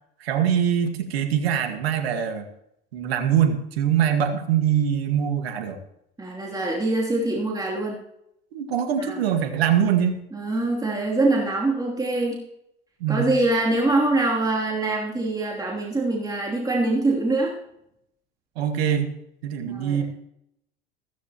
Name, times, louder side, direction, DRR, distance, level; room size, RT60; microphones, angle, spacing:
voice 1, 0.2-2.5 2.9-5.8 8.5-10.2 13.0-13.4 18.6-19.1 19.4-20.0, right 9 dB, 80° right, 6 dB, 1.9 m, -23 dB
voice 2, 6.2-8.0 9.0-9.2 10.3-12.4 13.1-17.6 19.6-20.0, right 2 dB, 10° right, -2 dB, 3.0 m, -24 dB
15.0 x 14.5 x 3.0 m, 0.78 s
hypercardioid pair, 80°, 30 cm